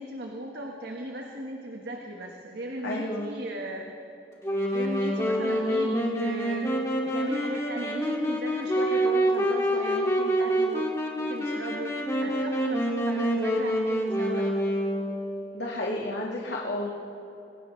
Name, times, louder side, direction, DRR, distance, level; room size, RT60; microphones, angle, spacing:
voice 1, 0.0-3.9 4.6-6.7 7.0-10.9 11.2-14.5, right 1 dB, 75° right, 0 dB, 1.5 m, -37 dB
voice 2, 2.8-3.3 15.5-16.9, left 1 dB, 85° left, -3 dB, 1.9 m, -31 dB
Wind instrument woodwind instrument, 4.4-15.3, equal, 15° left, 2.3 m, -27 dB
27.0 x 16.5 x 3.3 m, 2.9 s
head